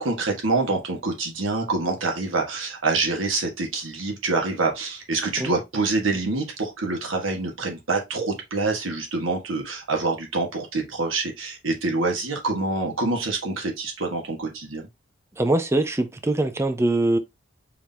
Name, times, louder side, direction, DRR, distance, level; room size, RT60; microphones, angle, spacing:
voice 1, 0.0-14.8, right 3 dB, 90° right, 1.5 m, -26 dB
voice 2, 15.4-17.2, right 2 dB, 15° right, 0.4 m, -22 dB
4.7 x 2.7 x 3.5 m
head